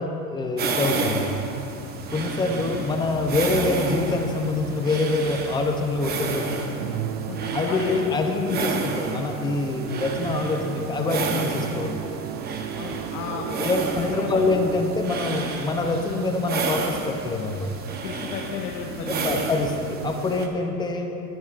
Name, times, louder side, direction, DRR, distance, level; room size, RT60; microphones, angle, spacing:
voice 1, 0.0-1.4 2.1-6.6 7.5-12.0 13.3-17.7 19.1-21.1, left 3 dB, 10° left, 4 dB, 0.4 m, -25 dB
sound 1, 0.6-20.5, right 4 dB, 20° right, 0.8 m, -31 dB
Musical instrument, 6.8-15.3, right 11 dB, 85° right, 0.6 m, -35 dB
voice 2, 7.3-8.4 12.8-14.7 18.0-19.5, left 6 dB, 80° left, 0 dB, 1.2 m, -34 dB
18.5 x 10.5 x 2.4 m, 2.8 s
supercardioid pair, 135°, 46 cm